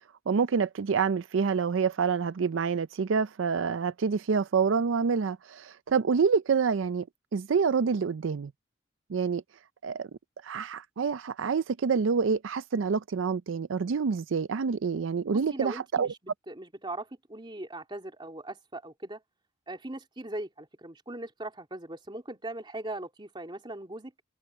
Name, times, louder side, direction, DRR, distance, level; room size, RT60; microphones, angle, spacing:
voice 1, 0.3-7.1 7.3-8.5 9.1-9.4 9.8-10.1 10.4-16.1, right 5 dB, 85° right, 0.5 m, -27 dB
voice 2, 15.3-16.2 16.5-19.2 19.7-24.1, right 1 dB, 25° right, 2.9 m, -39 dB
head